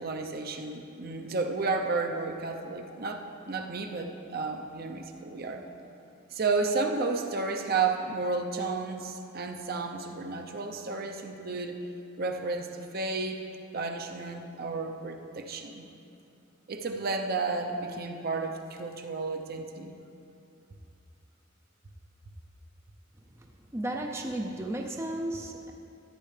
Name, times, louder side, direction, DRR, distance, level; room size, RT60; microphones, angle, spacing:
voice 1, 0.0-5.6 6.3-11.8 12.2-13.4 13.7-15.8 16.7-20.0, right 3 dB, 50° right, 4 dB, 0.7 m, -32 dB
voice 2, 23.7-25.7, right 1 dB, 15° right, 1 dB, 0.5 m, -33 dB
13.5 x 9.8 x 3.3 m, 2.8 s
head